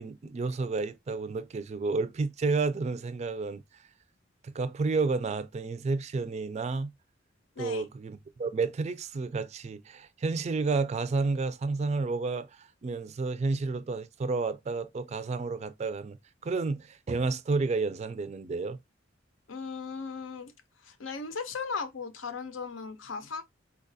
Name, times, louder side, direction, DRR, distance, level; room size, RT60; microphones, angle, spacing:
voice 1, 0.0-3.6 4.4-6.9 7.6-16.2 16.4-18.8, right 3 dB, 35° right, 0.3 m, -31 dB
voice 2, 7.6-7.9 19.5-20.5 20.8-23.4, left 5 dB, 85° left, 0.6 m, -37 dB
4.0 x 2.3 x 2.6 m
head